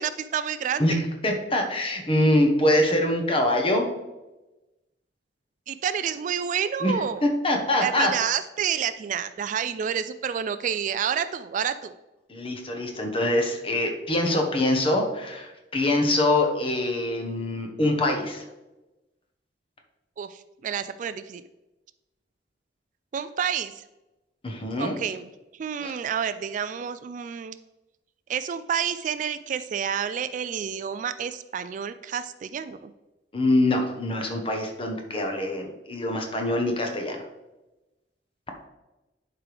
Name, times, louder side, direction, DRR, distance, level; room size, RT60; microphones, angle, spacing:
voice 1, 0.0-1.0 5.7-7.2 7.8-11.9 20.2-21.4 23.1-23.7 24.8-25.3 25.6-27.6 28.3-32.9, right 8 dB, 45° right, 12 dB, 0.3 m, -29 dB
voice 2, 0.8-3.9 6.8-6.9 7.2-8.1 12.3-18.4 24.4-25.0 25.8-25.9 33.3-37.2, left 1 dB, 30° left, 3 dB, 1.2 m, -24 dB
11.0 x 4.8 x 3.4 m, 1.0 s
head